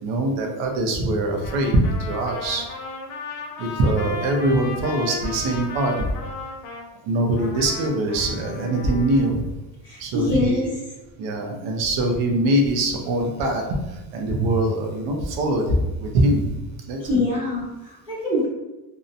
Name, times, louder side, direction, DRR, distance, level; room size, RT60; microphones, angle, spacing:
voice 1, 0.0-2.7 3.6-6.1 7.0-9.4 10.0-10.7 11.2-13.6 14.1-16.5 16.9-17.0, right 1 dB, 70° right, 2 dB, 0.7 m, -22 dB
Trumpet, 1.3-6.9 7.4-9.3, left 4 dB, 80° left, 0.6 m, -35 dB
voice 2, 9.8-10.7 17.0-18.5, left 2 dB, 10° right, -13 dB, 0.8 m, -24 dB
2.7 x 2.1 x 2.6 m, 1.0 s
cardioid pair, 165°, 44 cm